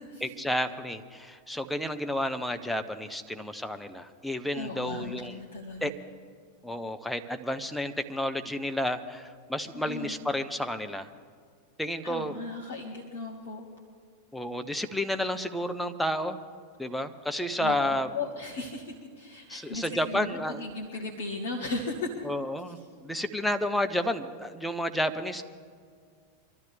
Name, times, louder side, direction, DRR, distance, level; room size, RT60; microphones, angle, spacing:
voice 1, 0.2-5.4 5.8-5.9 6.6-11.1 11.8-12.4 14.3-16.4 16.8-18.1 19.5-20.6 22.2-25.4, left 1 dB, 5° left, 6 dB, 0.9 m, -31 dB
voice 2, 4.5-5.9 9.7-10.1 12.0-13.7 17.6-17.8 18.1-22.3, left 3 dB, 55° left, -3 dB, 1.7 m, -36 dB
24.5 x 13.0 x 3.5 m, 2.1 s
figure-of-eight pair, 90°, 0 cm